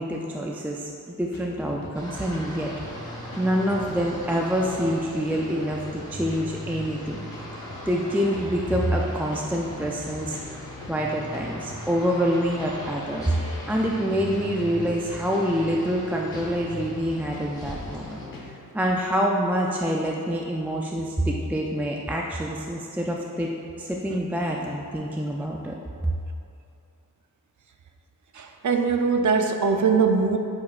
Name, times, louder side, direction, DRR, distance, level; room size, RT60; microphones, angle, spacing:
voice 1, 0.0-7.2 7.8-10.4 10.9-18.2 18.7-23.5 23.8-25.8, equal, 5° right, -2 dB, 0.3 m, -26 dB
sound 1, 1.3-18.5, left 2 dB, 70° left, 1.1 m, -41 dB
sound 2, 1.9-18.2, equal, 10° left, 1.3 m, -41 dB
voice 2, 28.3-30.4, right 5 dB, 60° right, 5 dB, 0.5 m, -22 dB
8.2 x 4.9 x 2.4 m, 2.5 s
wide cardioid pair, 130°, 35 cm